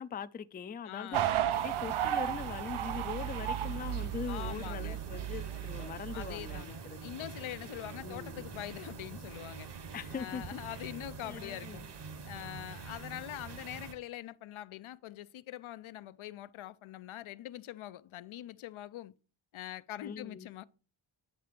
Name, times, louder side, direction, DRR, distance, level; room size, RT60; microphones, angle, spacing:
voice 1, 0.0-7.1 8.0-8.5 9.9-10.6 11.2-11.8 20.0-20.5, left 6 dB, 20° left, 0.3 m, -42 dB
voice 2, 0.9-1.3 4.3-5.0 6.1-9.7 10.1-11.8 12.2-19.1 19.5-20.6, left 13 dB, 80° left, 0.5 m, -43 dB
sound 1, 1.1-6.6, right 11 dB, 85° right, 0.7 m, -34 dB
sound 2, 1.5-13.9, right 5 dB, 55° right, 1.2 m, -46 dB
9.4 x 3.4 x 6.6 m
wide cardioid pair, 110°, 48 cm